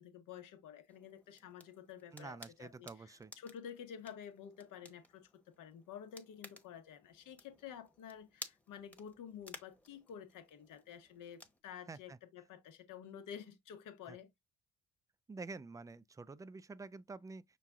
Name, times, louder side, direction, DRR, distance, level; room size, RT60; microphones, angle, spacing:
voice 1, 0.0-14.3, left 8 dB, 70° left, 1.1 m, -51 dB
sound 1, 0.9-11.6, left 1 dB, 5° left, 1.0 m, -57 dB
voice 2, 2.1-3.3 11.9-12.2 14.1-14.2 15.3-17.4, right 3 dB, 10° right, 0.3 m, -48 dB
5.8 x 2.3 x 3.6 m
supercardioid pair, 70°, 32 cm